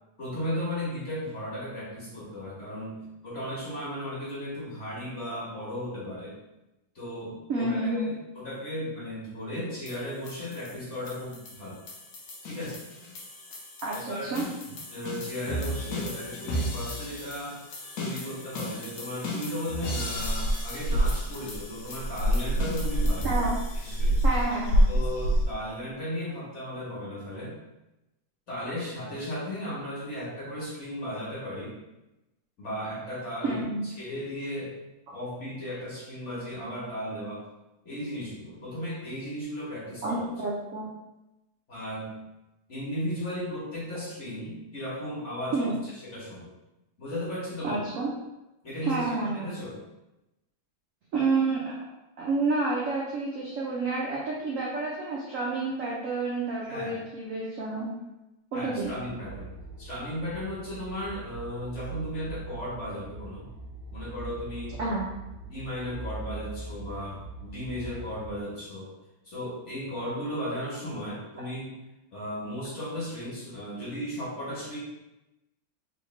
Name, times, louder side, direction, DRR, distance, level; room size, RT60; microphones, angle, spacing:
voice 1, 0.2-6.4 6.9-11.8 12.4-12.8 13.9-14.3 14.9-17.6 18.0-23.3 23.8-24.2 24.9-27.6 28.5-31.7 32.6-34.8 35.1-37.4 37.8-40.2 41.7-42.1 42.7-45.7 46.0-46.5 47.0-47.8 48.6-49.1 49.3-49.8 56.6-57.0 58.5-59.5 59.8-63.5 63.9-64.8 65.5-68.9 69.2-71.7 72.1-74.8, equal, 40° left, -7 dB, 1.3 m, -35 dB
voice 2, 7.5-8.1 13.8-14.4 23.2-23.6 24.2-24.9 33.4-33.8 40.0-40.9 45.5-45.8 47.6-48.1 48.8-49.5 51.1-51.7 52.2-57.9 58.5-58.9 64.8-65.1, right 3 dB, 75° right, -4 dB, 0.7 m, -29 dB
sound 1, 9.9-24.4, left 1 dB, 60° left, 1.1 m, -37 dB
sound 2, 20.2-25.4, equal, 75° left, 1.3 m, -25 dB
sound 3, 58.8-68.4, right 3 dB, 40° right, 1.1 m, -42 dB
3.3 x 3.1 x 3.1 m, 0.96 s
omnidirectional pair, 2.1 m